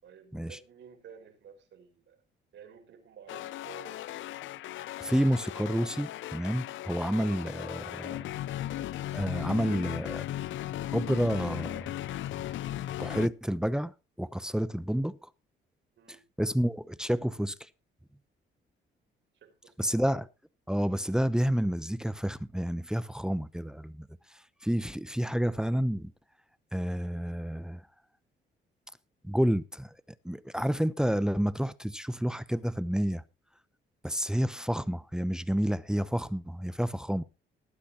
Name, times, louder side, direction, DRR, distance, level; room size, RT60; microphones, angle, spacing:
voice 1, 0.0-2.2 2.5-4.0 16.0-16.2 19.3-20.0, right 7 dB, 70° right, 5.2 m, -52 dB
sound 1, 3.3-13.3, left 13 dB, 75° left, 0.6 m, -37 dB
voice 2, 5.0-8.3 8.8-10.2 10.9-11.9 13.0-13.9 14.2-15.3 16.4-17.5 19.8-20.3 20.7-24.1 24.6-26.1 26.7-27.8 29.2-29.9 30.2-33.2 34.0-37.2, equal, 5° right, 0.8 m, -29 dB
19.0 x 9.5 x 3.0 m
cardioid pair, 90°, 20 cm